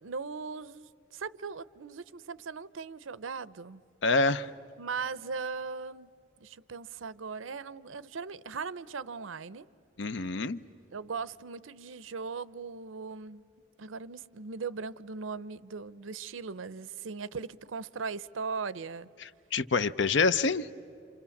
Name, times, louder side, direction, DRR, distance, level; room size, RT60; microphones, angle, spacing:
voice 1, 0.0-3.8 4.8-6.1 6.4-9.7 10.9-13.5 13.8-19.1, right 5 dB, 85° right, 0.7 m, -39 dB
voice 2, 4.0-4.5 10.0-10.6 19.2-20.7, left 4 dB, 65° left, 0.7 m, -27 dB
28.0 x 28.0 x 7.2 m
head